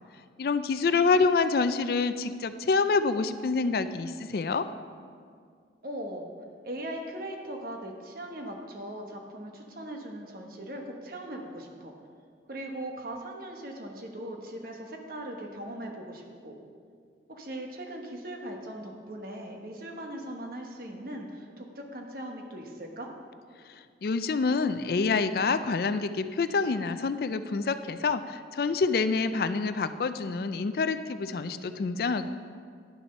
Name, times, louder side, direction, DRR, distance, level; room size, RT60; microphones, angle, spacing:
voice 1, 0.4-4.7 24.0-32.3, left 4 dB, 55° left, 11 dB, 0.4 m, -27 dB
voice 2, 5.8-6.3 6.6-11.9 12.5-16.5 17.3-23.1, right 1 dB, 50° right, 2 dB, 1.2 m, -39 dB
10.0 x 7.1 x 5.4 m, 2.1 s
head